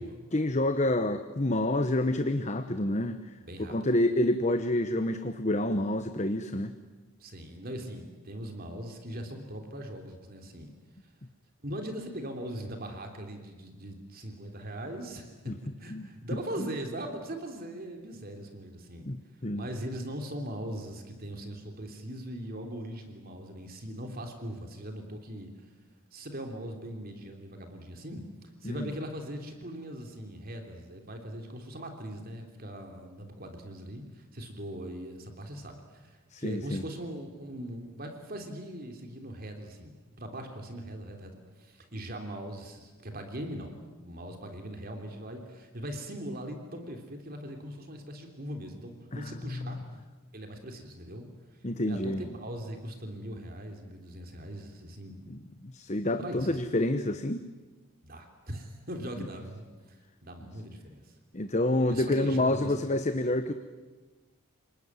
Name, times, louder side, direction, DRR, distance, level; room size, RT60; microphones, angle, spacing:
voice 1, 0.3-3.2 3.6-6.7 15.5-15.6 15.9-16.1 19.1-19.7 28.6-28.9 36.3-36.8 49.1-49.3 49.6-49.7 51.6-52.2 55.3-57.4 61.3-63.5, left 1 dB, 30° left, 9 dB, 1.0 m, -28 dB
voice 2, 3.4-3.8 7.2-10.7 11.6-15.5 15.8-19.1 19.5-25.5 26.1-28.2 28.6-41.3 41.6-49.8 50.3-51.3 51.8-55.2 56.2-56.6 58.0-59.6 60.2-61.1 61.9-62.7, right 1 dB, 45° right, 4 dB, 3.2 m, -40 dB
29.5 x 20.0 x 9.6 m, 1.3 s
head